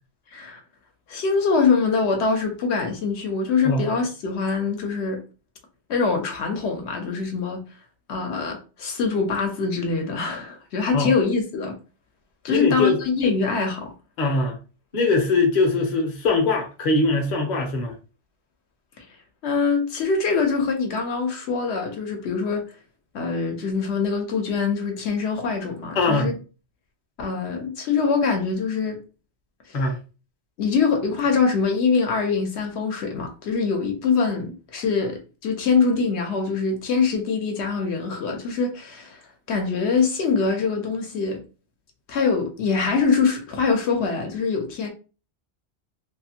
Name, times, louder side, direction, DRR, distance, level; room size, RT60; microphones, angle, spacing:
voice 1, 1.1-5.2 5.9-7.6 8.1-11.8 12.4-13.9 19.0-19.1 19.4-22.7 23.1-26.3 27.2-29.0 30.6-39.2 39.5-41.4 42.1-44.9, left 5 dB, 75° left, 0.9 m, -24 dB
voice 2, 12.5-13.0 14.2-14.6 14.9-17.9 26.0-26.3 29.7-30.0, left 3 dB, 45° left, 0.8 m, -21 dB
2.6 x 2.4 x 2.7 m
omnidirectional pair, 1.2 m